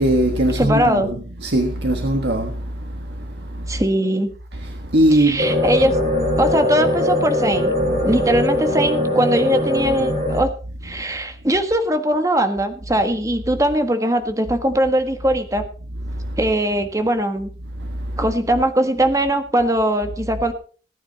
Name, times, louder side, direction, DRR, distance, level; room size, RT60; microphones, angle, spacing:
voice 1, 0.0-3.8 4.5-5.6 10.9-11.0 16.1-16.4 17.7-18.2, right 1 dB, 75° right, 1.6 m, -21 dB
voice 2, 0.6-1.1 3.7-4.3 5.1-5.9 6.4-7.7 8.0-10.5 10.8-15.6 16.4-17.5 18.2-20.5, right 1 dB, 20° right, 1.5 m, -20 dB
sound 1, 5.4-10.4, left 1 dB, 40° right, 6.0 m, -21 dB
19.0 x 9.5 x 4.2 m
head